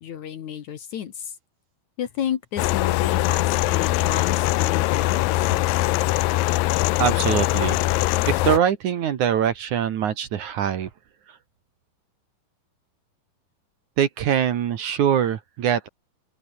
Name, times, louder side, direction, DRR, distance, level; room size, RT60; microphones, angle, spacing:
voice 1, 0.0-1.3 2.0-5.6, left 9 dB, 60° left, 2.5 m, -31 dB
sound 1, 2.6-8.6, left 18 dB, 80° left, 2.3 m, -22 dB
voice 2, 7.0-10.9 14.0-15.9, right 9 dB, 60° right, 2.6 m, -23 dB
open air
omnidirectional pair, 4.4 m